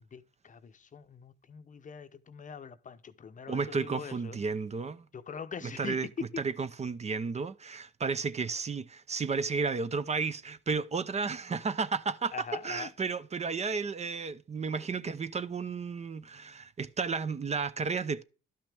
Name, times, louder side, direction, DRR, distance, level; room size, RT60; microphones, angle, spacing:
voice 1, 0.1-4.4 5.1-6.4 12.3-12.9, left 6 dB, 40° left, 0.8 m, -42 dB
voice 2, 3.5-5.0 5.6-6.1 6.4-12.3 12.6-18.2, right 5 dB, 35° right, 0.7 m, -33 dB
12.0 x 5.8 x 3.4 m
cardioid pair, 90°, 20 cm